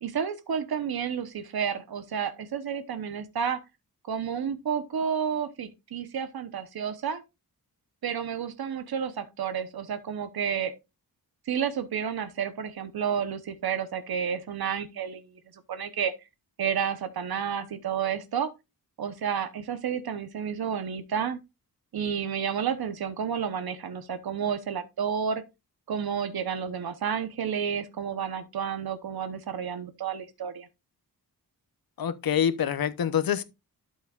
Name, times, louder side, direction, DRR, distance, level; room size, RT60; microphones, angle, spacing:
voice 1, 0.0-3.6 4.1-7.2 8.0-10.7 11.5-15.4 15.7-16.1 16.6-18.5 19.0-21.4 21.9-25.4 25.9-30.7, right 7 dB, 70° right, 1.0 m, -31 dB
voice 2, 32.0-33.4, left 9 dB, 65° left, 0.9 m, -26 dB
12.0 x 6.4 x 2.4 m
wide cardioid pair, 180°, 38 cm